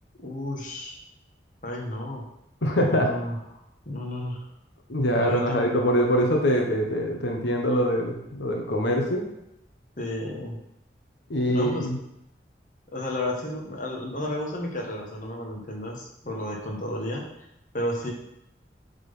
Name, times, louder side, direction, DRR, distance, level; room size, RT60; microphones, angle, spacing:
voice 1, 0.2-1.0 1.6-2.2 2.9-3.4 3.8-4.5 5.1-5.6 10.0-10.6 11.5-11.9 12.9-17.2 17.7-18.1, left 1 dB, 45° left, -1 dB, 1.4 m, -32 dB
voice 2, 2.6-3.2 4.9-9.2 11.3-12.0, equal, 85° left, 1 dB, 1.1 m, -24 dB
7.2 x 4.0 x 5.5 m, 0.83 s
head